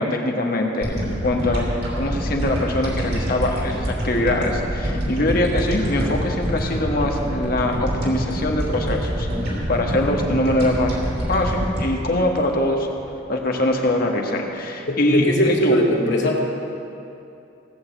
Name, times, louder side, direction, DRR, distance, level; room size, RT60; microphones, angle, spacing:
voice 1, 0.0-1.6 1.9-9.3 9.7-11.0 11.3-12.9 13.3-15.8, left 1 dB, 50° left, 1 dB, 1.5 m, -22 dB
sound 1, 0.8-13.3, equal, 60° right, 3.0 m, -26 dB
voice 2, 14.9-16.4, equal, 70° left, -2 dB, 2.2 m, -20 dB
17.0 x 6.7 x 7.9 m, 2.7 s
head